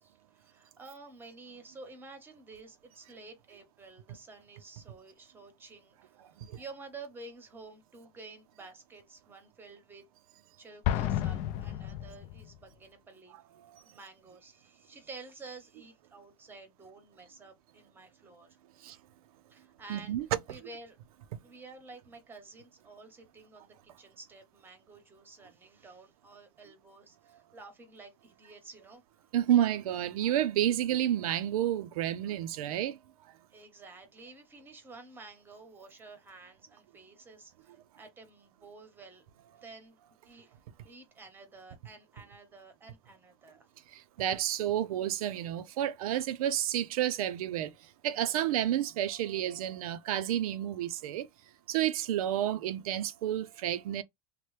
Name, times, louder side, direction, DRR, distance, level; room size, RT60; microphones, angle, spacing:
voice 1, 0.0-10.0 10.6-13.5 13.8-18.9 19.5-20.2 20.5-21.0 21.4-29.3 32.6-32.8 33.5-43.7, right 3 dB, 10° right, 0.9 m, -51 dB
Explosion, 10.8-12.6, left 12 dB, 45° left, 0.4 m, -32 dB
voice 2, 19.9-20.3 29.3-33.0 43.9-47.7 48.0-51.3 51.7-54.0, right 11 dB, 85° right, 0.5 m, -30 dB
3.0 x 2.1 x 3.1 m
supercardioid pair, 140°, 18 cm